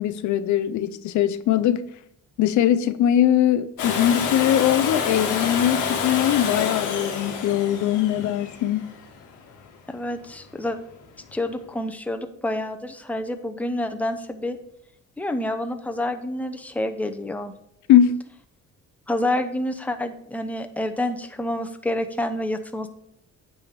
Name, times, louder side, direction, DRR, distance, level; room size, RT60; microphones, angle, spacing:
voice 1, 0.0-1.8 2.4-8.9 17.9-18.2, left 11 dB, 70° left, 0.5 m, -21 dB
Domestic sounds home sounds, 3.8-9.6 11.5-11.6, left 6 dB, 90° left, 1.5 m, -28 dB
voice 2, 9.9-10.8 11.3-14.6 15.2-17.5 19.1-22.9, left 1 dB, 5° left, 0.7 m, -28 dB
8.8 x 3.5 x 5.9 m
cardioid pair, 90°, 30 cm